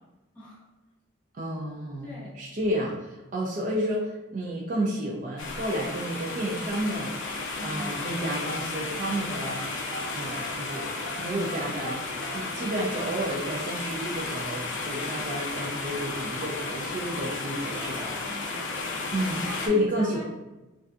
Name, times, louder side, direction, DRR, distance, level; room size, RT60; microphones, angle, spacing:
voice 1, 0.3-0.6 2.0-2.4 7.5-8.1 17.7-19.0 19.4-20.2, left 1 dB, 10° left, -9 dB, 0.8 m, -42 dB
voice 2, 1.3-7.2 7.6-9.6 10.1-10.9 11.2-12.0 12.3-18.1 19.1-20.2, equal, 40° right, -3 dB, 0.3 m, -31 dB
sound 1, 5.4-19.7, left 3 dB, 65° left, 0.4 m, -33 dB
sound 2, 8.4-10.1 10.3-12.4, right 1 dB, 65° right, 0.8 m, -39 dB
2.6 x 2.2 x 2.3 m, 1.1 s
head